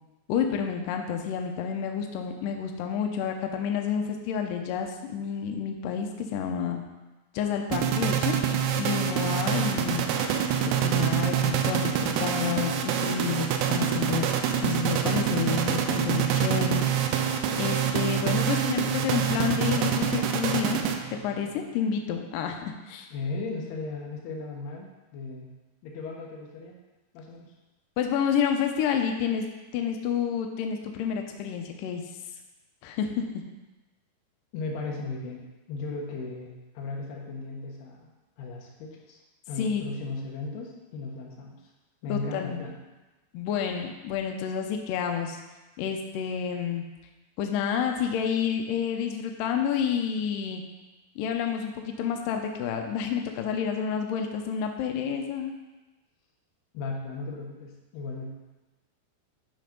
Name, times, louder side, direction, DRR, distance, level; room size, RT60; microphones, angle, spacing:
voice 1, 0.3-6.8 7.3-8.4 8.8-10.1 10.6-14.3 14.6-16.8 17.6-20.8 21.2-23.1 28.0-29.5 29.7-32.0 32.8-33.4 39.6-39.8 42.1-42.6 43.3-45.4 45.8-46.8 47.4-50.6 51.2-55.5, left 7 dB, 90° left, 4 dB, 1.9 m, -29 dB
sound 1, 7.7-21.3, right 8 dB, 80° right, 2.5 m, -26 dB
voice 2, 23.1-25.5 25.8-26.8 27.1-27.5 34.5-38.1 38.4-39.2 39.5-41.6 42.0-42.8 56.7-58.3, left 3 dB, 70° left, -1 dB, 3.2 m, -36 dB
12.0 x 4.4 x 5.2 m, 1.1 s
omnidirectional pair, 5.0 m